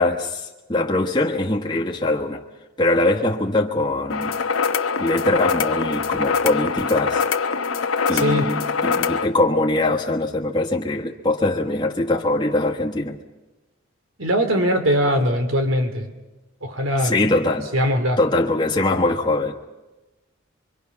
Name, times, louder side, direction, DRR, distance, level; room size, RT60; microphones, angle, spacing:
voice 1, 0.0-2.4 2.8-4.4 5.0-7.2 8.1-13.2 17.0-17.7 18.2-19.5, left 2 dB, 20° left, -3 dB, 1.4 m, -22 dB
sound 1, 4.1-9.3, left 5 dB, 85° left, 1.0 m, -23 dB
voice 2, 8.1-8.5 14.2-16.1 16.6-17.4 17.7-18.2, equal, 70° right, 6 dB, 2.6 m, -21 dB
25.0 x 24.0 x 5.9 m, 1.1 s
head